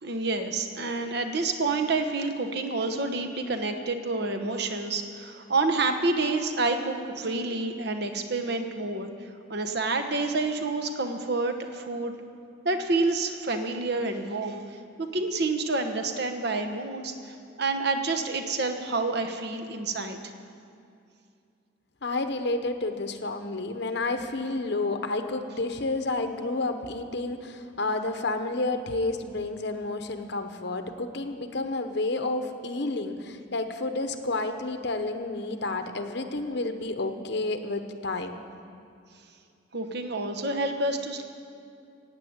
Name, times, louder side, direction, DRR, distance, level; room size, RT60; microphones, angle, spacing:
voice 1, 0.0-12.1 12.6-20.3 39.7-41.2, right 3 dB, 55° right, 5 dB, 1.1 m, -28 dB
voice 2, 22.0-38.4, left 2 dB, 55° left, 7 dB, 0.9 m, -30 dB
15.5 x 9.4 x 8.1 m, 2.4 s
head